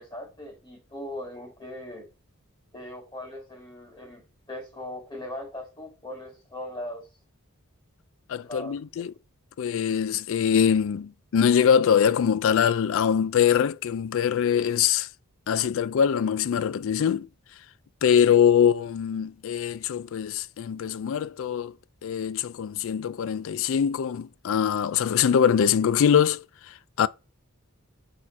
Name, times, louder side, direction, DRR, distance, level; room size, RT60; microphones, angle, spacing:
voice 1, 0.0-2.1 2.7-7.1 8.4-8.8, left 1 dB, 20° left, 2.9 m, -39 dB
voice 2, 8.3-9.1 9.6-15.1 15.5-17.3 18.0-21.7 22.0-27.1, left 8 dB, 65° left, 0.3 m, -23 dB
6.4 x 4.3 x 4.8 m
head